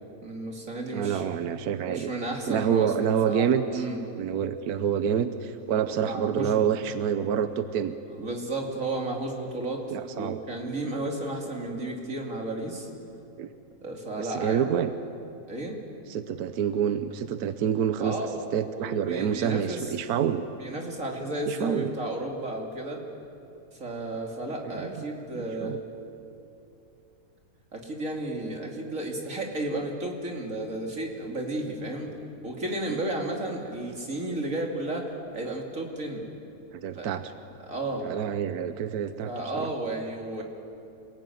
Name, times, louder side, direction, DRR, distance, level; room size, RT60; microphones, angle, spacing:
voice 1, 0.2-1.2 1.9-4.0 6.0-6.7 8.1-9.8 10.1-12.9 13.8-14.6 15.5-15.8 18.0-18.4 18.6-19.9 20.6-23.0 23.8-25.8 27.7-32.1 32.4-35.1 35.3-36.3 36.9-37.1 37.6-38.0 39.2-40.4, right 2 dB, 60° right, 1 dB, 3.3 m, -33 dB
voice 2, 0.9-2.1 2.5-3.8 4.1-7.9 9.9-10.4 13.4-13.5 14.2-14.9 16.1-20.4 21.5-21.9 24.7-25.0 25.3-25.8 32.9-33.0 36.7-37.3 38.0-39.7, right 8 dB, 80° right, 10 dB, 1.3 m, -27 dB
28.0 x 17.5 x 9.4 m, 2.7 s
omnidirectional pair, 1.6 m